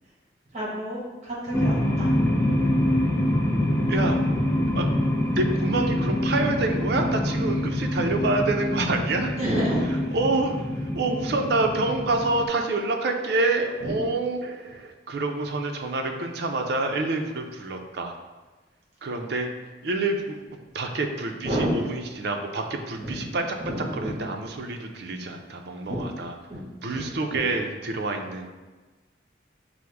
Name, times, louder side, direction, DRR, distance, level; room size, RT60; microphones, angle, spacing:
voice 1, 0.5-2.1 9.4-9.8 10.9-11.0 13.8-14.0 21.4-21.7 23.0-24.1 25.9-26.0 26.5-26.6 26.9-27.0 27.3-27.4, right 1 dB, 35° right, -5 dB, 1.2 m, -30 dB
sound 1, 1.5-12.5, left 1 dB, 15° left, 0.3 m, -25 dB
voice 2, 3.9-4.2 4.7-4.9 5.2-9.4 10.1-18.1 19.0-19.5 19.8-20.4 20.7-26.3 26.8-28.5, right 2 dB, 60° right, 4 dB, 0.5 m, -27 dB
6.0 x 2.0 x 3.4 m, 1.2 s
head